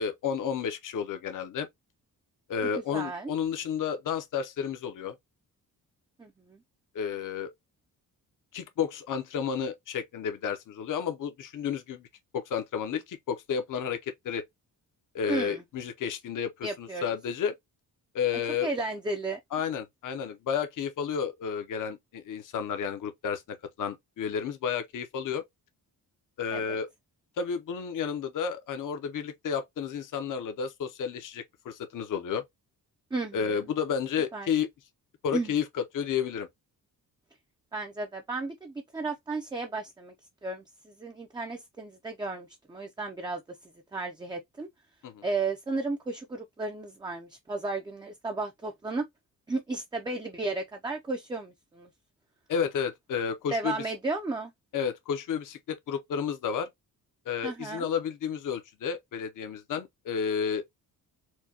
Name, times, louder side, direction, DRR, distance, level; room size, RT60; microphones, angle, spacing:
voice 1, 0.0-1.7 2.5-5.1 6.9-7.5 8.5-12.1 12.3-14.4 15.1-17.5 18.1-18.7 19.5-25.4 26.4-26.9 27.4-32.4 33.3-34.7 35.2-36.5 45.0-45.2 52.5-53.8 54.7-56.7 57.3-60.6, left 7 dB, 55° left, 0.7 m, -31 dB
voice 2, 2.6-3.3 6.2-6.6 15.3-15.6 16.6-17.0 18.6-19.4 26.5-26.8 33.1-33.5 34.3-34.5 35.3-35.5 37.7-40.1 40.4-43.4 43.9-44.7 45.2-49.1 49.5-51.9 53.5-54.5 57.4-57.9, right 3 dB, 10° right, 0.4 m, -34 dB
4.5 x 2.2 x 2.7 m
cardioid pair, 130°, 37 cm